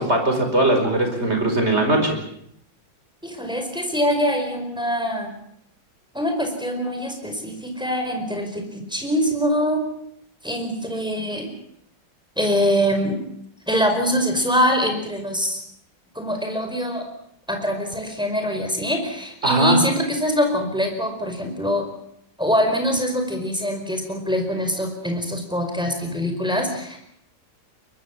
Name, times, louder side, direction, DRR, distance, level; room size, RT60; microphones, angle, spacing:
voice 1, 0.0-2.2 19.4-19.8, right 1 dB, 35° right, 4 dB, 5.1 m, -20 dB
voice 2, 3.2-5.3 6.1-9.8 10.4-11.5 12.4-13.2 13.7-15.6 16.1-17.1 17.5-21.9 22.4-27.0, equal, ahead, 3 dB, 4.9 m, -23 dB
23.0 x 22.0 x 7.4 m, 0.72 s
omnidirectional pair, 2.0 m